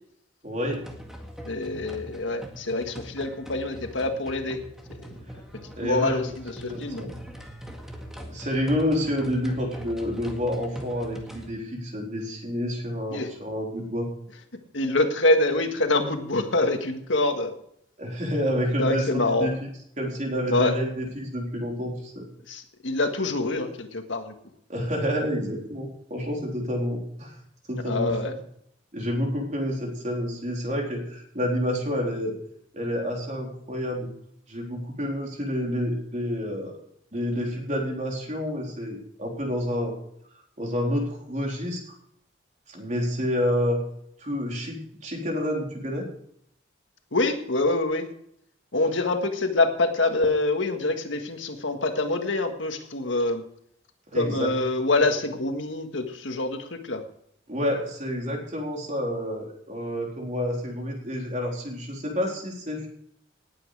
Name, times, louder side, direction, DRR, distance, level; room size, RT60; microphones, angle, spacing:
voice 1, 0.4-0.8 5.8-6.2 6.6-7.1 8.3-14.1 18.0-19.6 20.0-22.3 24.7-27.3 27.7-28.2 28.9-32.3 32.7-34.1 34.5-36.8 37.1-39.9 40.6-41.8 42.7-43.8 44.2-46.1 54.1-54.5 57.5-62.9, equal, 40° right, 0 dB, 3.9 m, -29 dB
sound 1, 0.7-11.5, equal, 5° right, 1.9 m, -42 dB
voice 2, 1.5-4.6 5.8-7.1 13.1-13.3 14.7-17.5 18.8-19.5 20.5-20.7 22.5-24.3 27.8-28.4 47.1-48.1 48.7-53.4 54.1-57.0, left 2 dB, 80° left, 5 dB, 1.8 m, -25 dB
19.0 x 8.9 x 4.9 m, 0.71 s
head